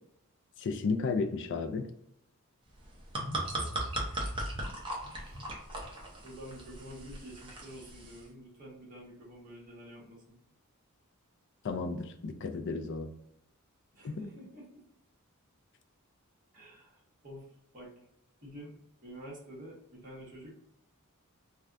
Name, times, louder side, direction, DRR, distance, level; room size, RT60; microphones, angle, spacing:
voice 1, 0.6-1.9 11.6-13.1 14.0-14.2, left 4 dB, 55° left, 6 dB, 0.4 m, -33 dB
sound 1, 2.8-8.2, right 1 dB, 25° right, 0.7 m, -38 dB
voice 2, 5.2-5.7 6.2-10.4 13.9-14.8 16.5-17.9 18.4-18.7 19.0-20.7, equal, 40° right, -6 dB, 1.5 m, -49 dB
3.3 x 2.3 x 2.5 m, 0.76 s
head